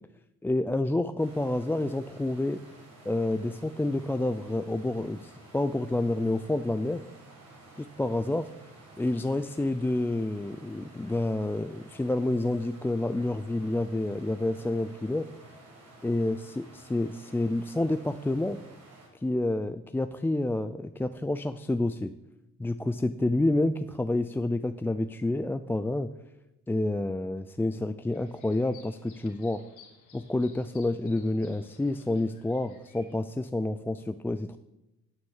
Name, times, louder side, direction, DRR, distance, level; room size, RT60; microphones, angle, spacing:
voice 1, 0.4-2.6 3.0-7.0 7.8-8.5 9.0-15.3 16.0-18.6 19.1-22.1 22.6-26.1 26.7-29.6 30.1-34.6, left 2 dB, 5° left, 10 dB, 0.3 m, -29 dB
sound 1, 1.2-19.1, right 2 dB, 55° right, 5.1 m, -52 dB
sound 2, 28.1-33.2, left 6 dB, 80° left, 2.3 m, -57 dB
9.6 x 7.1 x 7.2 m, 0.95 s
cardioid pair, 90°, 30 cm